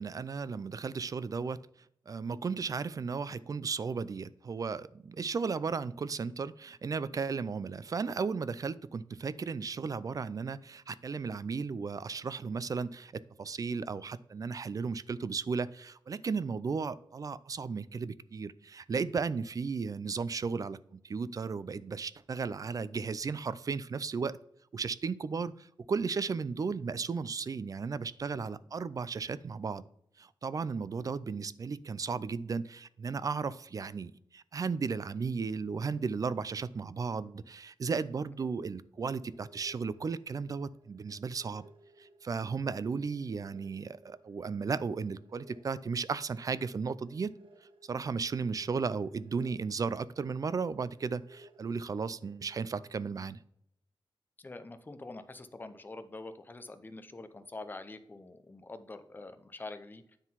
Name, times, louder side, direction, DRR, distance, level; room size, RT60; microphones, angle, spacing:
voice 1, 0.0-1.6 2.1-24.4 24.7-29.8 30.2-41.7 42.0-47.3 47.8-53.4, right 5 dB, 40° right, 17 dB, 0.4 m, -35 dB
sound 1, 39.3-52.8, right 1 dB, 85° right, 1.4 m, -61 dB
voice 2, 54.4-60.0, left 2 dB, 20° left, 10 dB, 0.6 m, -45 dB
9.7 x 3.8 x 5.7 m, 0.72 s
wide cardioid pair, 130°, 9 cm